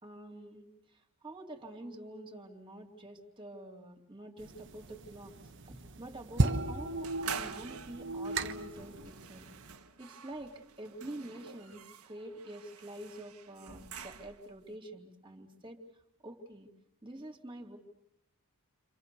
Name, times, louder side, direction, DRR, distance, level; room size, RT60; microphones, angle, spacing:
voice 1, 0.0-5.3 5.6-9.5 10.0-15.8 16.2-16.7 17.0-17.8, right 1 dB, 20° right, 3 dB, 3.1 m, -47 dB
sound 1, 4.4-9.7, right 2 dB, 55° right, 1.3 m, -34 dB
sound 2, 7.0-14.6, right 7 dB, 85° right, 1.8 m, -47 dB
30.0 x 26.5 x 7.0 m, 0.76 s
head